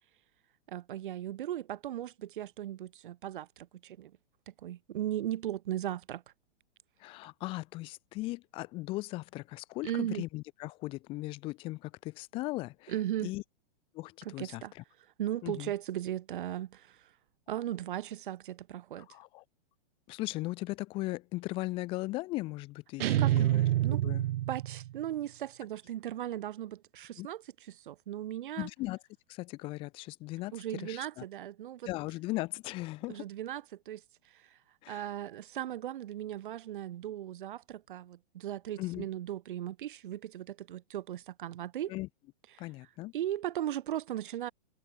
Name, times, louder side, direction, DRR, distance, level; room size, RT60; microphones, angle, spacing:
voice 1, 0.7-4.1 4.5-6.2 9.8-10.2 12.9-13.3 14.2-14.7 15.2-17.1 17.5-19.1 23.0-24.0 24.5-27.4 27.7-28.7 30.5-31.9 33.1-34.0 34.3-34.6 34.9-41.9 43.1-44.5, right 12 dB, 55° right, 2.6 m, -37 dB
voice 2, 7.0-12.9 13.2-13.4 13.9-14.8 15.4-15.7 19.1-19.4 20.1-23.6 24.0-24.2 27.2-27.3 28.6-29.0 29.3-31.2 31.9-33.3 34.8-35.1 38.8-39.1 41.9-42.1 42.6-43.1, left 20 dB, 20° left, 0.9 m, -38 dB
sound 1, 23.0-25.0, right 14 dB, 75° right, 0.5 m, -27 dB
hypercardioid pair, 170°, 30 cm